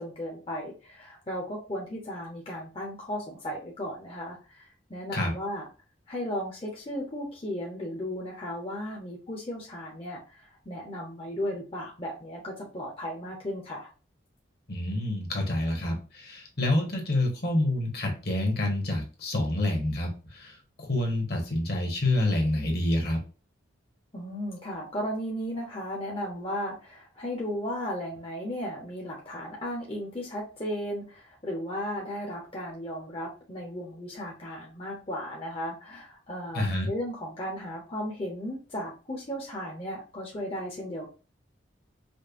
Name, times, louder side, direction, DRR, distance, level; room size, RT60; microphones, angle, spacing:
voice 1, 0.0-5.6 6.1-13.9 24.1-41.1, equal, 30° left, -2 dB, 0.7 m, -35 dB
voice 2, 14.7-23.2 36.5-36.9, left 1 dB, 55° left, 2 dB, 1.2 m, -28 dB
5.1 x 2.1 x 2.5 m, 0.34 s
head